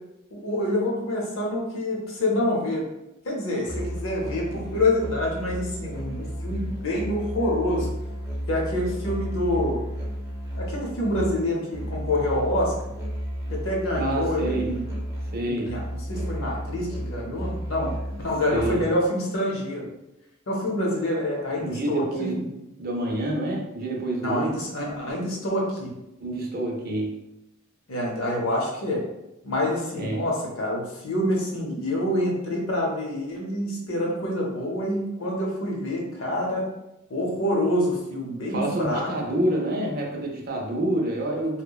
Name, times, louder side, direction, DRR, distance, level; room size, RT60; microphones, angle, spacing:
voice 1, 0.3-2.9 3.2-7.9 8.5-9.8 10.5-12.7 13.5-14.9 15.4-15.8 16.1-18.0 18.2-19.9 20.5-22.4 24.2-26.0 27.9-29.0 29.4-36.7 37.1-39.1, left 1 dB, 75° left, -1 dB, 0.7 m, -27 dB
Musical instrument, 3.7-19.0, equal, 15° right, 0.7 m, -33 dB
voice 2, 14.0-14.8 15.3-15.8 18.5-18.9 21.6-24.5 26.2-27.2 30.0-30.2 38.5-41.6, right 1 dB, 50° right, 0 dB, 0.5 m, -28 dB
2.8 x 2.1 x 2.3 m, 0.90 s
head